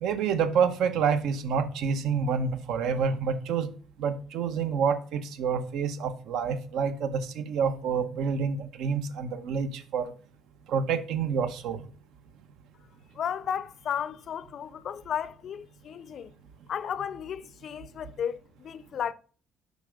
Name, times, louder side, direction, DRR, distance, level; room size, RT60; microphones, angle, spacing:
voice 1, 0.0-3.7 4.0-10.1 10.7-11.9, right 6 dB, 75° right, 0.9 m, -28 dB
voice 2, 13.2-16.3 16.7-19.1, left 8 dB, 45° left, 0.4 m, -34 dB
8.2 x 5.4 x 5.1 m
cardioid pair, 175°, 0 cm